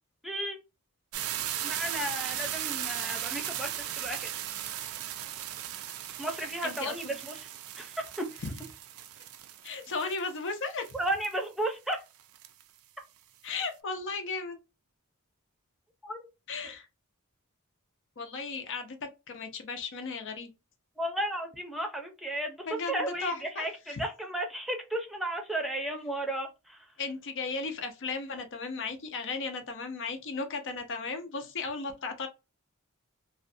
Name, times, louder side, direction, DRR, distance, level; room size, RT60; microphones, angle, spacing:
voice 1, 0.2-0.6 1.6-4.3 6.2-7.5 7.8-8.2 10.9-12.0 16.0-16.2 21.0-26.9, right 1 dB, ahead, 0.6 m, -34 dB
sound 1, 1.1-11.4 11.9-12.0 12.2-12.6, right 11 dB, 70° right, 0.3 m, -37 dB
voice 2, 6.6-7.1 9.6-10.9 13.4-14.6 16.5-16.9 18.2-20.5 22.7-24.0 27.0-32.3, left 4 dB, 55° left, 0.6 m, -35 dB
2.5 x 2.2 x 2.6 m
head